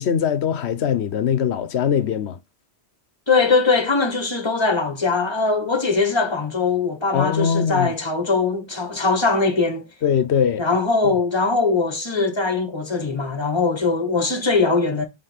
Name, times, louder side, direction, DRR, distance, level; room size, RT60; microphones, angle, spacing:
voice 1, 0.0-2.4 7.1-7.9 10.0-10.6, left 8 dB, 80° left, 1.1 m, -21 dB
voice 2, 3.3-9.9 10.6-15.0, left 4 dB, 25° left, 1.3 m, -21 dB
5.8 x 3.6 x 5.1 m
omnidirectional pair, 1.1 m